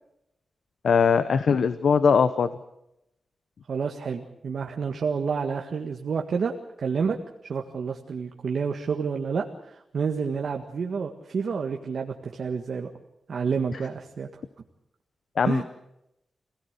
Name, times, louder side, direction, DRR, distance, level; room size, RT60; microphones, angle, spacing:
voice 1, 0.8-2.5 15.4-15.6, left 6 dB, 60° left, 12 dB, 1.0 m, -20 dB
voice 2, 3.7-7.2 7.4-12.9 13.3-14.3 15.5-15.6, right 5 dB, 60° right, 3 dB, 1.8 m, -29 dB
26.5 x 17.5 x 8.2 m, 0.84 s
wide cardioid pair, 175°, 0 cm